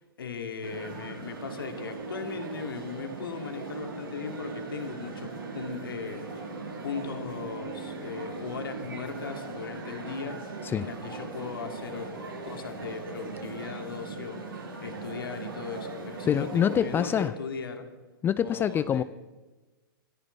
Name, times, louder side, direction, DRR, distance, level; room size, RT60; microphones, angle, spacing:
voice 1, 0.0-6.5 6.8-10.4 10.8-17.9 18.4-19.0, left 5 dB, 80° left, 2.4 m, -38 dB
sound 1, 0.6-17.2, right 3 dB, 90° right, 6.3 m, -39 dB
voice 2, 16.3-17.3 18.2-19.0, left 9 dB, 20° left, 0.4 m, -25 dB
25.0 x 14.5 x 3.4 m
hypercardioid pair, 115°, 12 cm